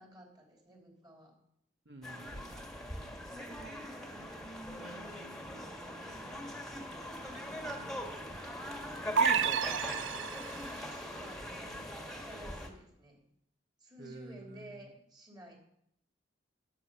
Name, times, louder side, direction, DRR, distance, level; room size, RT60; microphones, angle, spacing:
voice 1, 0.0-1.3 3.3-3.9 4.4-6.6 7.3-9.5 10.7-11.9 12.2-13.2 13.8-15.6, right 1 dB, 25° right, 0 dB, 3.0 m, -53 dB
voice 2, 1.9-3.4 9.8-10.1 14.0-14.9, right 2 dB, 60° right, 4 dB, 1.0 m, -52 dB
sound 1, 2.0-12.7, equal, 5° left, 1.6 m, -41 dB
sound 2, 9.2-10.8, right 6 dB, 80° right, 0.4 m, -30 dB
13.0 x 8.6 x 5.5 m, 0.74 s
head